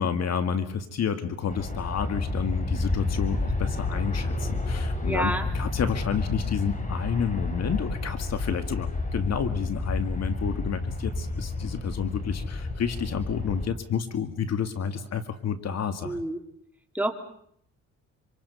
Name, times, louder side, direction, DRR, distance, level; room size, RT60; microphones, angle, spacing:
voice 1, 0.0-16.2, left 7 dB, 60° left, 9 dB, 2.1 m, -30 dB
Aircraft, 1.5-13.7, left 3 dB, 25° left, 4.2 m, -30 dB
voice 2, 5.0-5.5 16.0-16.4 16.9-17.1, right 1 dB, 5° right, 4 dB, 3.0 m, -28 dB
26.5 x 26.5 x 5.6 m, 0.67 s
cardioid pair, 90°, 30 cm